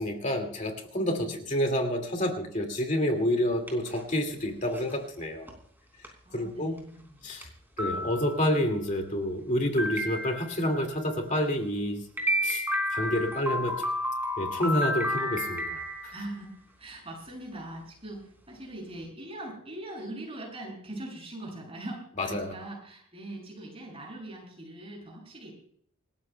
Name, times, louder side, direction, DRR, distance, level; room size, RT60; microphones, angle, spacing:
voice 1, 0.0-5.5 6.3-6.8 7.2-7.5 7.8-12.0 12.4-12.6 12.9-13.9 14.4-16.1 22.2-22.6, equal, 35° left, 4 dB, 2.1 m, -29 dB
sound 1, 3.5-4.1 4.7-4.9 5.5-5.6 6.0-6.1 6.8-6.9 7.4-7.5 7.8-8.6 9.8-10.7 12.2-16.4, equal, 10° right, 3.9 m, -31 dB
voice 2, 6.3-7.3 16.1-25.5, right 1 dB, 30° right, 0 dB, 7.1 m, -41 dB
28.0 x 14.0 x 2.2 m, 0.62 s
head